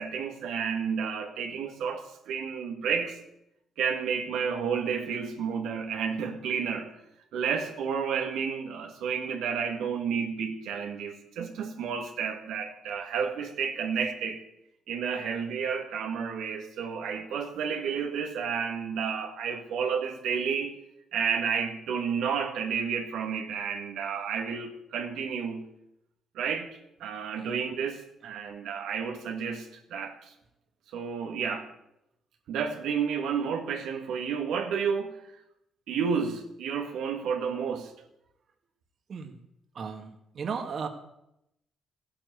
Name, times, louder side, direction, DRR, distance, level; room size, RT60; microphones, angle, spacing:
voice 1, 0.0-3.2 3.8-6.9 7.3-14.4 14.9-20.7 21.1-25.6 26.3-30.3 30.9-31.7 32.5-35.2 35.9-37.9, right 6 dB, 85° right, 3 dB, 2.2 m, -31 dB
voice 2, 39.7-40.9, right 5 dB, 55° right, 5 dB, 2.2 m, -35 dB
15.5 x 10.0 x 8.4 m, 0.82 s
cardioid pair, 90°, 0 cm